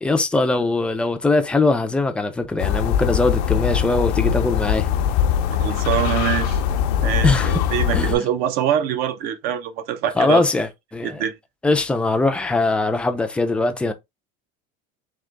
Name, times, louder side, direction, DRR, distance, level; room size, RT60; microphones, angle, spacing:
voice 1, 0.0-4.9 7.2-7.6 7.9-8.3 10.2-11.2 11.6-13.9, left 3 dB, 5° left, 0.3 m, -21 dB
sound 1, 2.6-8.2, left 9 dB, 90° left, 0.6 m, -21 dB
voice 2, 5.5-6.6 7.0-10.4 11.0-11.3, right 10 dB, 50° right, 0.6 m, -24 dB
3.7 x 2.9 x 3.3 m
cardioid pair, 165°, 21 cm